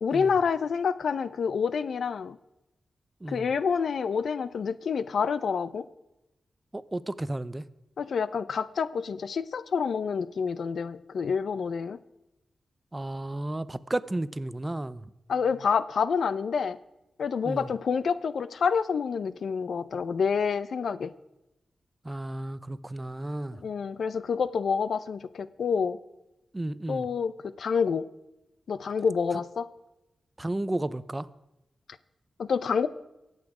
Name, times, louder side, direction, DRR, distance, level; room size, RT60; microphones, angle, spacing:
voice 1, 0.0-2.4 3.3-5.9 8.0-12.0 15.3-16.8 17.2-21.1 23.5-26.0 26.9-28.1 28.7-29.7 32.4-32.9, left 6 dB, 80° left, 16 dB, 0.5 m, -28 dB
voice 2, 6.7-7.6 12.9-15.0 17.4-17.7 22.0-23.6 26.5-27.1 30.4-31.3, right 1 dB, 20° right, 16 dB, 0.5 m, -33 dB
23.0 x 8.2 x 4.9 m, 0.95 s
wide cardioid pair, 105°, 0 cm